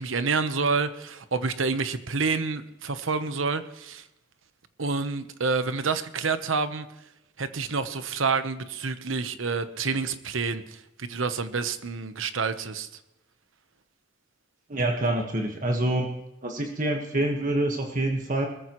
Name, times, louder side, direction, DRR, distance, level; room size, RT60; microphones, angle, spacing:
voice 1, 0.0-4.0 4.8-6.9 7.4-12.9, right 4 dB, 90° right, 11 dB, 1.0 m, -28 dB
voice 2, 14.7-16.2 16.4-18.5, right 1 dB, 45° right, 2 dB, 1.5 m, -26 dB
21.5 x 14.0 x 3.1 m, 0.93 s
head